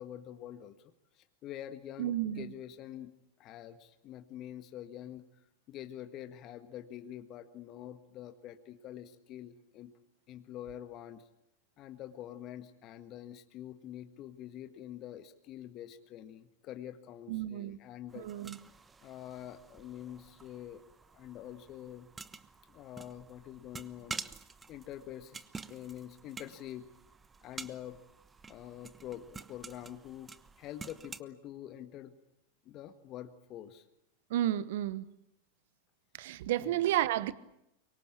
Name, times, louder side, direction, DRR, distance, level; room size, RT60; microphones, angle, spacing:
voice 1, 0.0-3.1 3.4-5.4 5.7-9.9 10.3-11.3 11.8-18.6 19.0-20.8 21.1-22.1 22.7-24.2 24.7-25.4 25.7-26.9 27.4-28.0 28.5-32.1 32.6-33.8 36.6-36.8, left 11 dB, 40° left, 1.6 m, -46 dB
voice 2, 2.0-2.5 17.3-17.8 18.1-18.6 34.3-35.1 36.1-37.3, right 13 dB, 60° right, 1.2 m, -32 dB
sound 1, 18.1-31.2, right 4 dB, 15° right, 1.1 m, -49 dB
25.0 x 23.5 x 8.6 m
figure-of-eight pair, 95°, 0 cm